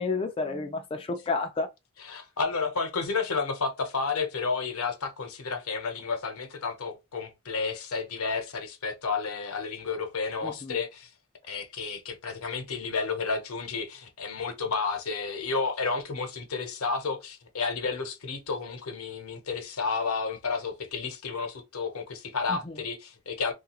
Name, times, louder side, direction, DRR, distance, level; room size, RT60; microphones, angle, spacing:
voice 1, 0.0-1.7 10.4-10.8 22.5-22.7, left 3 dB, 25° left, 0.4 m, -31 dB
voice 2, 2.0-11.1 11.5-23.5, left 4 dB, 80° left, 0.8 m, -31 dB
3.1 x 2.4 x 2.9 m
head